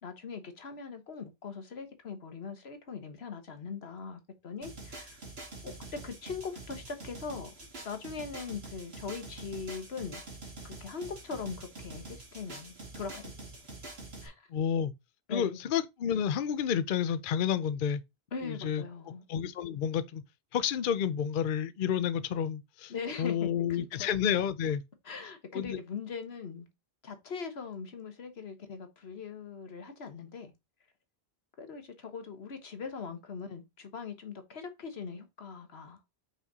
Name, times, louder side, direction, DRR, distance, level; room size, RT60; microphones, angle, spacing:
voice 1, 0.0-5.2 5.6-10.2 10.6-13.5 14.2-14.5 15.3-15.6 18.3-19.2 22.9-24.1 25.0-26.7 27.0-30.5 31.6-36.0, left 5 dB, 85° left, 1.5 m, -41 dB
sound 1, 4.6-14.3, right 2 dB, 85° right, 2.4 m, -46 dB
voice 2, 14.5-14.9 15.3-18.0 18.4-18.8 19.3-20.2 20.5-22.9 23.2-24.8 25.5-25.8, left 8 dB, 60° left, 0.7 m, -30 dB
5.7 x 4.5 x 4.0 m
omnidirectional pair, 1.0 m